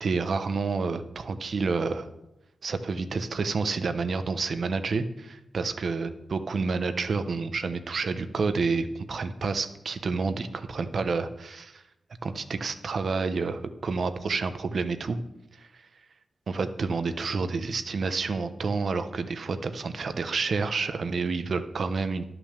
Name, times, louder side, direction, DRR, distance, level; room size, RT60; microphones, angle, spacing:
voice 1, 0.0-2.1 2.6-11.8 12.2-15.2 15.6-15.7 16.5-22.2, right 4 dB, 65° right, 10 dB, 0.9 m, -29 dB
11.5 x 6.1 x 6.7 m, 0.90 s
cardioid pair, 50°, 0 cm